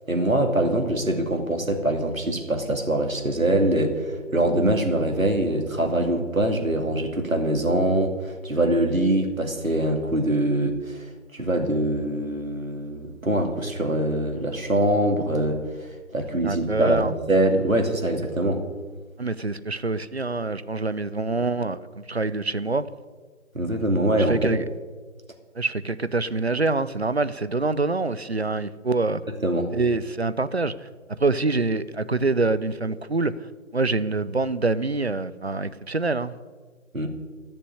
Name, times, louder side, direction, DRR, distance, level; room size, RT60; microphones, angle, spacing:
voice 1, 0.1-11.1 11.3-18.6 23.5-24.4 29.3-29.7 36.9-37.1, right 1 dB, 80° right, 4 dB, 2.7 m, -23 dB
voice 2, 16.4-17.1 19.2-22.9 24.2-24.6 25.6-29.2 29.7-30.9 31.2-36.3, right 3 dB, 55° right, 14 dB, 0.7 m, -25 dB
13.0 x 6.8 x 9.8 m, 1.4 s
figure-of-eight pair, 165°, 40 cm